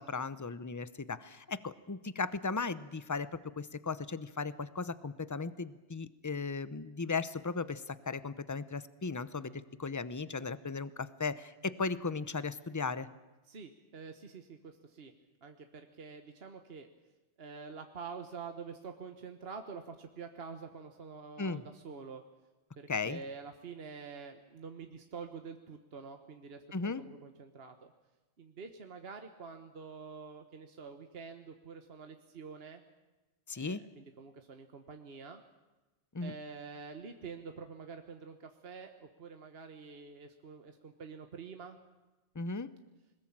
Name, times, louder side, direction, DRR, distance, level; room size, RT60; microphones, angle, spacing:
voice 1, 0.0-3.3 3.6-13.1 21.4-21.6 22.9-23.2 26.7-27.0 33.5-33.8 36.1-36.3 42.3-42.7, left 4 dB, 20° left, 15 dB, 0.7 m, -36 dB
voice 2, 13.4-15.1 15.4-16.9 17.4-22.2 22.8-27.9 28.4-32.8 33.5-35.4 36.2-41.8, right 5 dB, 60° right, 6 dB, 1.5 m, -47 dB
22.0 x 20.0 x 8.8 m, 1.1 s
omnidirectional pair, 1.2 m